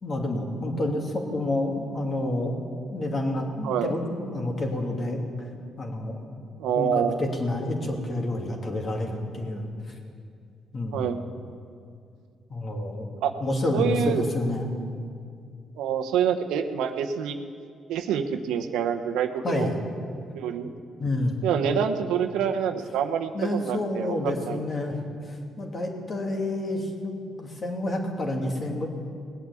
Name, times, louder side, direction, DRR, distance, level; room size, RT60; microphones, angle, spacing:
voice 1, 0.0-5.2 5.8-6.2 6.7-9.7 10.7-11.1 12.5-13.1 13.4-14.7 19.4-19.8 21.0-21.4 23.3-25.0 25.3-27.1 27.4-28.9, left 1 dB, 40° left, 2 dB, 2.7 m, -29 dB
voice 2, 6.6-7.2 10.9-11.2 13.2-13.3 13.7-14.2 15.8-17.4 17.9-19.7 20.3-20.7 21.4-24.6, right 8 dB, 85° right, 7 dB, 0.9 m, -26 dB
18.5 x 8.5 x 8.4 m, 2.4 s
cardioid pair, 75°, 0 cm